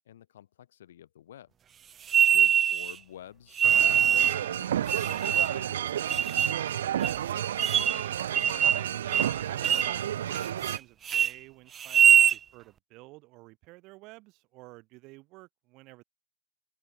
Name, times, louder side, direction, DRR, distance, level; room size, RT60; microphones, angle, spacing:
voice 1, 0.0-1.5 2.3-6.1, left 11 dB, 75° left, 5.6 m, -50 dB
sound 1, 2.1-2.9 3.6-4.4 4.9-5.6 6.1-6.6 7.0-7.1 7.6-8.1 8.3-8.9 9.1-9.3 9.6-9.9 10.4-10.8 11.1-11.3 11.8-12.4, right 8 dB, 25° right, 1.0 m, -23 dB
sound 2, 3.6-10.8, right 10 dB, 80° right, 1.3 m, -31 dB
voice 2, 6.9-8.2 9.0-16.0, right 22 dB, 50° right, 6.5 m, -51 dB
open air
hypercardioid pair, 110°, 0 cm